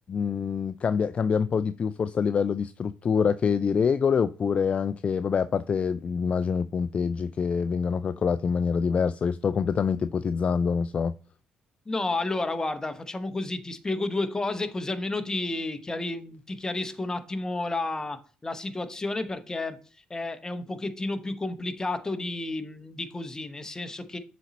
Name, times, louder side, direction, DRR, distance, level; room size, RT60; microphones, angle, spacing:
voice 1, 0.1-11.1, left 6 dB, 40° left, 0.3 m, -26 dB
voice 2, 11.9-19.8 20.1-24.2, left 2 dB, 20° left, 0.9 m, -31 dB
7.0 x 4.2 x 4.0 m
supercardioid pair, 75°, 3 cm